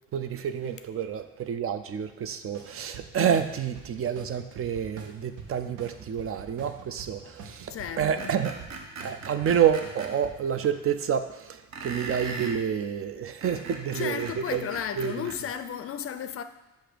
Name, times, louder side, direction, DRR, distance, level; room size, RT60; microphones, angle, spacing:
voice 1, 0.1-8.6 9.0-14.7 15.0-15.1, right 8 dB, 50° right, 0.5 m, -28 dB
sound 1, 2.5-10.7, right 5 dB, 85° right, 0.8 m, -47 dB
voice 2, 7.7-8.3 13.9-16.4, left 9 dB, 50° left, 0.4 m, -34 dB
Screech, 8.2-10.1 11.7-12.6 13.2-15.4, right 3 dB, 65° right, 0.9 m, -39 dB
7.7 x 2.6 x 5.0 m
cardioid pair, 90°, 30 cm